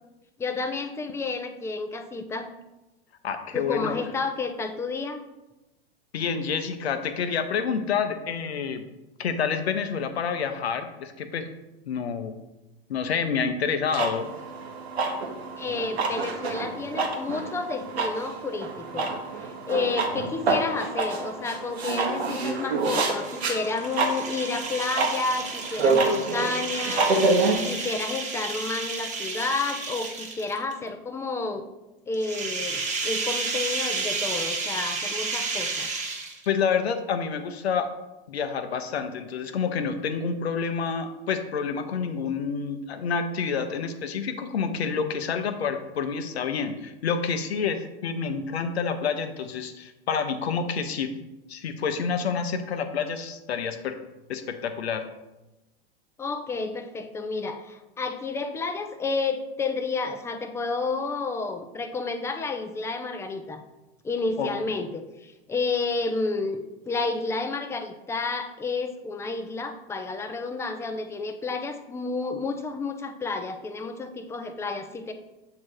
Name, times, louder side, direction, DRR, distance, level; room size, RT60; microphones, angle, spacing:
voice 1, 0.4-2.5 3.5-5.2 15.6-27.4 27.6-31.7 32.1-35.9 56.2-63.6 64.0-66.6 66.8-75.1, left 3 dB, 10° left, 7 dB, 0.4 m, -31 dB
voice 2, 3.2-4.0 6.1-8.8 9.2-11.4 11.9-12.3 12.9-14.3 36.5-37.9 38.3-51.1 51.5-54.0 54.3-55.0 64.4-64.5, left 6 dB, 85° left, 8 dB, 0.7 m, -28 dB
sound 1, 13.9-27.5, right 3 dB, 90° right, 1.0 m, -28 dB
sound 2, 23.1-30.7 32.1-36.6, right 4 dB, 25° right, 1.1 m, -32 dB
7.3 x 2.9 x 4.7 m, 1.0 s
hypercardioid pair, 110°, 31 cm